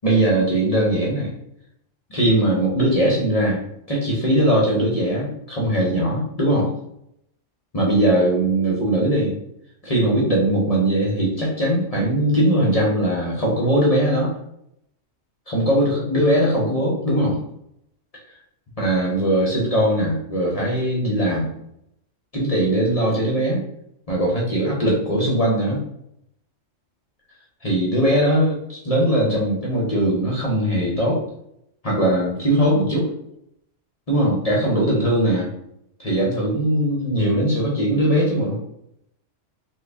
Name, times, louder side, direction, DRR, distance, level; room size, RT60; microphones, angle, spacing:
voice 1, 0.0-1.3 2.1-6.7 7.7-9.3 9.8-14.3 15.5-17.4 18.8-21.5 22.3-23.6 24.1-25.8 27.6-31.2 31.8-33.1 34.1-35.5 36.0-38.6, right 1 dB, 40° left, -4 dB, 0.6 m, -20 dB
2.9 x 2.5 x 3.4 m, 0.76 s
omnidirectional pair, 1.3 m